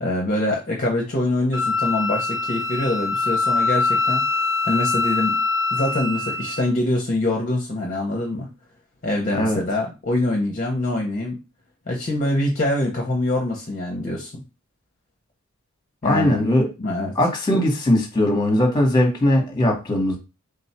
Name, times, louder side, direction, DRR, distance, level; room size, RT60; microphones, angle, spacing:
voice 1, 0.0-4.2 4.6-5.4 5.7-8.5 9.0-11.4 11.9-14.4 16.0-16.4 16.8-17.1, left 1 dB, 35° left, 0.7 m, -24 dB
Wind instrument woodwind instrument, 1.5-6.7, left 3 dB, 15° right, 0.8 m, -23 dB
voice 2, 16.0-16.7 17.1-20.2, left 1 dB, 20° left, 1.0 m, -19 dB
3.7 x 2.3 x 4.2 m
head